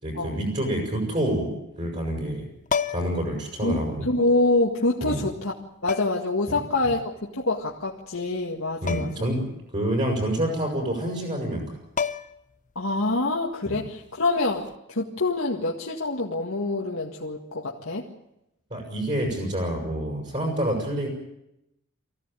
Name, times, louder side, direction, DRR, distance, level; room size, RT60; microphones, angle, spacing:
voice 1, 0.0-2.5 2.9-4.1 5.0-5.2 8.8-9.4 9.7-11.8 13.7-13.8 18.7-21.1, right 1 dB, 35° right, -1 dB, 6.6 m, -27 dB
sound 1, 2.7-3.3 4.6-4.7 5.9-6.3 8.9-9.3 9.6-9.7 11.5-11.6 12.0-12.5 14.5-14.7, left 6 dB, 35° left, 0.8 m, -30 dB
voice 2, 3.6-5.5 5.8-9.3 12.8-18.1, left 2 dB, 70° left, -2 dB, 2.0 m, -26 dB
24.0 x 16.0 x 9.0 m, 0.87 s
head